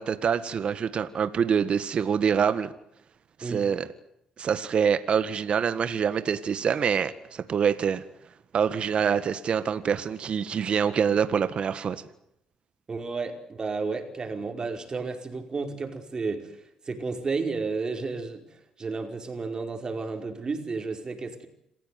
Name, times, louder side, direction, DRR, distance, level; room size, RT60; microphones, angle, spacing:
voice 1, 0.0-2.7 3.4-3.9 4.4-8.0 8.5-12.0, right 7 dB, 55° right, 13 dB, 1.7 m, -25 dB
voice 2, 12.9-16.6 16.8-21.5, right 4 dB, 35° right, 6 dB, 5.0 m, -32 dB
27.0 x 16.0 x 9.4 m, 0.77 s
cardioid pair, 80°, 2 cm